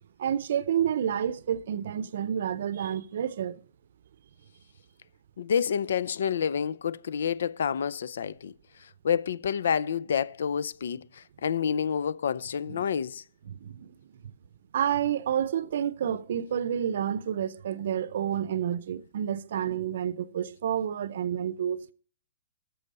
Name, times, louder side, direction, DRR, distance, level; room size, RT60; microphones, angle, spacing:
voice 1, 0.2-3.6 12.7-12.8 13.5-13.9 14.2-14.3 14.7-21.9, right 9 dB, 55° right, 0.6 m, -29 dB
voice 2, 5.4-8.5 9.0-13.2, left 7 dB, 65° left, 0.4 m, -28 dB
12.5 x 7.0 x 5.4 m
hypercardioid pair, 170°, 0 cm